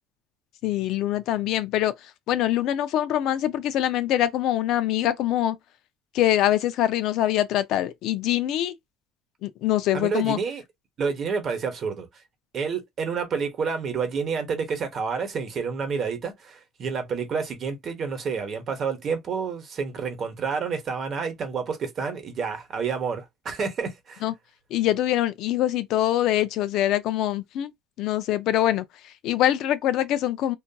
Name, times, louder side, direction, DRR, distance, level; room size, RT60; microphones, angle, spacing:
voice 1, 0.6-1.9 2.3-5.6 6.1-8.7 9.4-10.4 24.2-24.3 24.7-27.7 28.0-30.6, left 12 dB, 60° left, 0.4 m, -24 dB
voice 2, 9.9-10.6 11.0-12.1 12.5-24.3, right 5 dB, 40° right, 0.9 m, -29 dB
2.6 x 2.3 x 2.3 m
cardioid pair, 130°, 0 cm